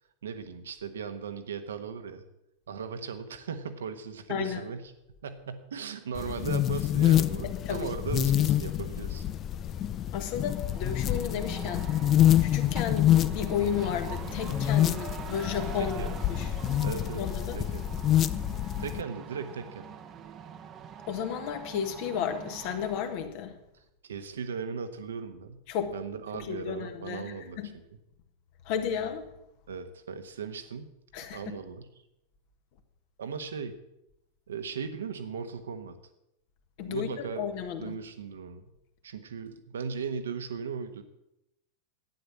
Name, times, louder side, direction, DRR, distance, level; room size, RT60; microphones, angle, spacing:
voice 1, 0.2-2.2 2.7-4.9 5.2-9.2 15.8-16.1 16.8-17.2 17.5-17.9 18.8-19.9 24.0-25.6 25.9-27.6 29.7-30.9 31.2-31.9 33.2-33.8 34.5-35.9 36.8-37.4 37.8-38.6 39.0-41.0, right 6 dB, 65° right, 9 dB, 1.2 m, -37 dB
voice 2, 4.3-4.6 7.4-7.9 10.1-11.9 12.4-16.0 16.3-16.5 17.1-17.6 21.1-23.6 25.7-25.9 26.3-27.7 28.7-29.3 31.1-31.6 36.8-38.0, left 8 dB, 45° left, 7 dB, 1.6 m, -33 dB
sound 1, 6.2-19.0, left 12 dB, 30° left, 0.5 m, -27 dB
sound 2, 10.4-23.3, right 8 dB, 30° right, 1.0 m, -43 dB
12.0 x 9.4 x 7.4 m, 0.89 s
figure-of-eight pair, 90°, 0 cm